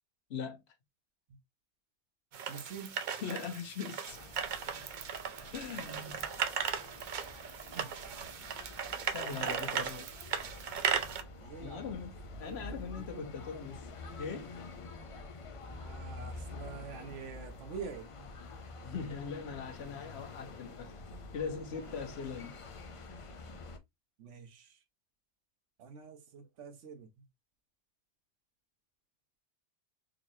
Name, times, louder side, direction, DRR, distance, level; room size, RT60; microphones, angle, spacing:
voice 1, 0.3-0.6 3.2-4.2 5.5-6.3 9.1-10.1 11.6-12.1 12.4-13.9 14.2-14.6 18.8-20.9 21.3-22.6, left 6 dB, 65° left, 1.0 m, -40 dB
sound 1, 2.3-11.2, right 7 dB, 55° right, 0.6 m, -37 dB
voice 2, 2.5-3.0 7.7-8.0 9.4-9.8 11.4-11.9 12.4-13.3 15.7-18.3 21.8-22.1 24.2-24.8 25.8-27.3, right 6 dB, 90° right, 1.1 m, -47 dB
sound 2, 4.1-23.8, left 3 dB, 45° left, 0.4 m, -48 dB
3.8 x 3.0 x 2.7 m
omnidirectional pair, 1.2 m